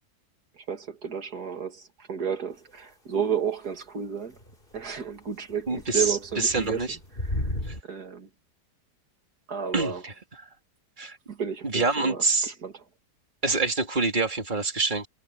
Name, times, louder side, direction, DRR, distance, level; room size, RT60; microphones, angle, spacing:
voice 1, 0.5-4.4 4.7-8.3 9.5-10.0 11.3-12.8, right 7 dB, 65° right, 2.6 m, -32 dB
Distant Thunder, 4.4-4.8 5.5-7.8, left 1 dB, 30° left, 3.9 m, -34 dB
voice 2, 5.7-6.9 7.7-7.8 9.7-10.1 11.0-11.2 11.6-12.5 13.4-15.1, right 3 dB, 25° right, 3.3 m, -26 dB
omnidirectional pair, 1.8 m